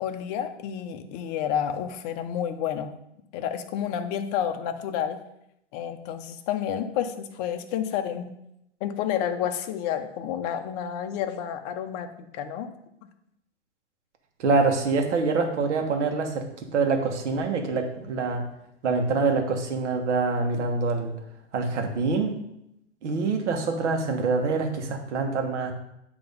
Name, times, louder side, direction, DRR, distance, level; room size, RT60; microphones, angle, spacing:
voice 1, 0.0-2.9 3.3-5.2 5.7-8.3 8.8-12.7, left 9 dB, 35° left, 6 dB, 0.7 m, -30 dB
voice 2, 14.4-16.5 16.7-18.4 18.8-21.1 21.5-22.4 23.0-25.7, right 4 dB, 75° right, 4 dB, 1.2 m, -25 dB
8.6 x 3.0 x 5.2 m, 0.80 s
hypercardioid pair, 135°, 36 cm